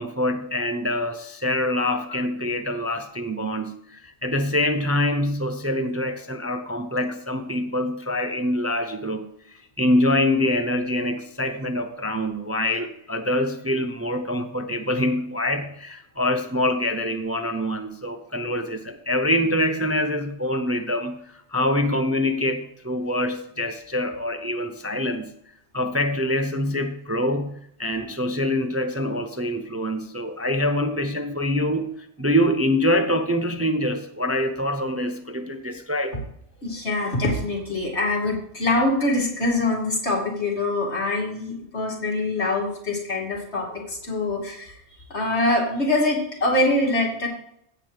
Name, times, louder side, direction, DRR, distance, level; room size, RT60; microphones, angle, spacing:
voice 1, 0.0-9.3 9.8-21.2 21.5-25.3 25.7-36.2, left 1 dB, 15° right, 7 dB, 0.5 m, -25 dB
voice 2, 36.6-44.7 45.1-47.3, left 2 dB, 75° left, -1 dB, 3.0 m, -24 dB
16.0 x 7.6 x 3.4 m, 0.73 s
omnidirectional pair, 1.1 m